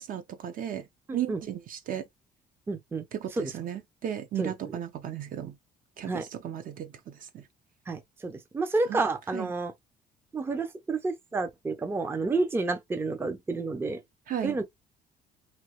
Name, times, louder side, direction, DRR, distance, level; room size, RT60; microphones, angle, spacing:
voice 1, 0.0-2.0 3.1-5.6 6.0-7.5 8.9-9.0 9.3-9.5 14.3-14.6, right 10 dB, 55° right, 0.6 m, -35 dB
voice 2, 1.1-1.4 2.7-3.0 3.4-3.5 4.4-4.5 6.1-6.2 7.9-9.7 10.3-14.0 14.4-14.6, right 3 dB, 15° right, 0.5 m, -30 dB
2.9 x 2.3 x 2.9 m
cardioid pair, 110°, 17 cm